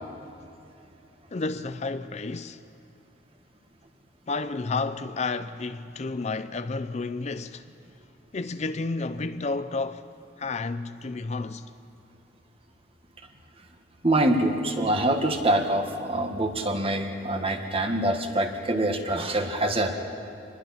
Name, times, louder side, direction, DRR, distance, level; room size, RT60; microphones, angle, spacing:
voice 1, 1.3-2.6 4.3-7.6 8.3-10.0 10.4-11.7, left 3 dB, 40° left, 0.5 m, -31 dB
voice 2, 14.0-20.0, right 1 dB, 30° right, 1.6 m, -25 dB
27.0 x 21.0 x 5.8 m
head